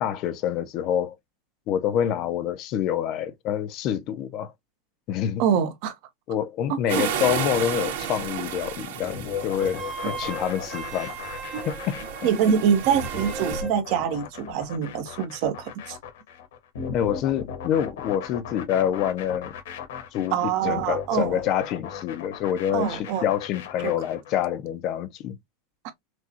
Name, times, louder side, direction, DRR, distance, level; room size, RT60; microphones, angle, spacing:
voice 1, 0.0-1.2 1.7-4.5 5.1-5.4 6.3-11.1 11.6-12.3 16.9-19.5 20.1-20.4 20.6-25.4, left 10 dB, 30° left, 0.5 m, -27 dB
voice 2, 5.4-5.9 6.7-7.1 10.0-10.1 11.5-11.7 12.2-16.0 20.3-21.4 22.7-23.3 23.8-23.9, right 8 dB, 40° right, 0.9 m, -25 dB
sound 1, 6.9-13.6, right 9 dB, 70° right, 1.9 m, -33 dB
sound 2, 9.0-24.4, left 7 dB, 80° left, 1.4 m, -37 dB
Wind instrument woodwind instrument, 9.6-13.8, right 4 dB, 15° right, 1.1 m, -37 dB
6.0 x 2.3 x 2.8 m
supercardioid pair, 180°, 0 cm